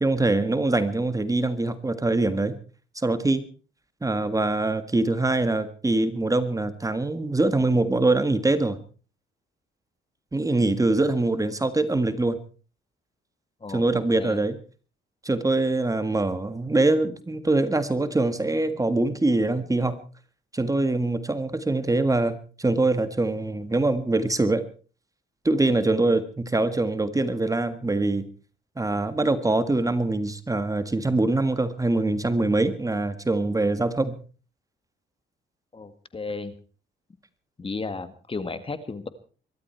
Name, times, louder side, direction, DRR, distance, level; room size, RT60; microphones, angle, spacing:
voice 1, 0.0-2.6 3.0-3.4 4.0-8.8 10.3-12.4 13.7-14.5 15.2-20.0 20.5-24.6 25.5-28.3 28.8-34.2, right 2 dB, 15° right, 11 dB, 1.7 m, -23 dB
voice 2, 35.7-36.5 37.6-39.1, left 3 dB, 25° left, 12 dB, 1.8 m, -34 dB
23.5 x 13.0 x 4.5 m, 0.38 s
cardioid pair, 90°, 20 cm